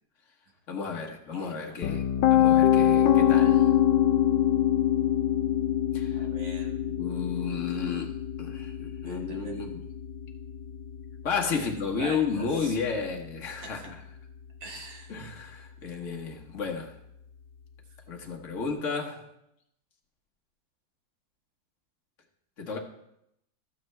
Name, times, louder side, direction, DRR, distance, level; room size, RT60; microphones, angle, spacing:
voice 1, 0.7-2.0 2.3-3.7 5.9-6.3 7.0-9.8 11.2-14.0 15.1-16.9 18.1-19.2 22.6-22.8, left 5 dB, 45° left, 1 dB, 1.3 m, -32 dB
voice 2, 1.3-2.0 6.1-6.9 9.0-9.5 11.5-11.7 12.0-12.8 13.6-13.9 14.6-15.1, right 2 dB, 75° right, 0 dB, 2.3 m, -44 dB
Piano, 1.8-13.7, left 11 dB, 80° left, 1.3 m, -25 dB
13.5 x 7.3 x 3.2 m, 0.80 s
omnidirectional pair, 2.0 m